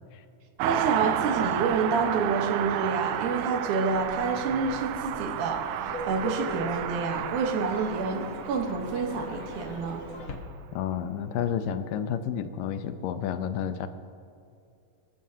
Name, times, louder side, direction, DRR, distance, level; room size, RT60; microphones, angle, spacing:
voice 1, 0.6-5.6 6.1-10.0, right 4 dB, 70° right, 3 dB, 2.6 m, -28 dB
Car passing by, 0.6-10.6 10.8-10.9, right 11 dB, 90° right, 2.3 m, -32 dB
sound 1, 3.9-10.4, left 2 dB, 55° left, 1.4 m, -41 dB
voice 2, 10.7-13.9, left 8 dB, 85° left, 10 dB, 2.4 m, -30 dB
25.5 x 14.5 x 2.8 m, 2.5 s
omnidirectional pair, 3.8 m